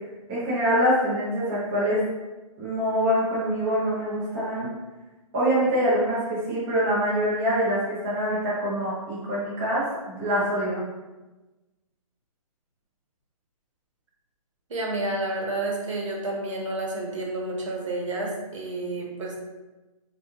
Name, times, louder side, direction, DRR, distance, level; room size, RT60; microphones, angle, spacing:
voice 1, 0.3-2.0 2.6-4.7 5.3-10.8, equal, 10° right, -9 dB, 0.3 m, -25 dB
voice 2, 14.7-19.4, right 2 dB, 60° right, -1 dB, 0.9 m, -30 dB
3.5 x 2.2 x 2.9 m, 1.1 s
hypercardioid pair, 165°, 19 cm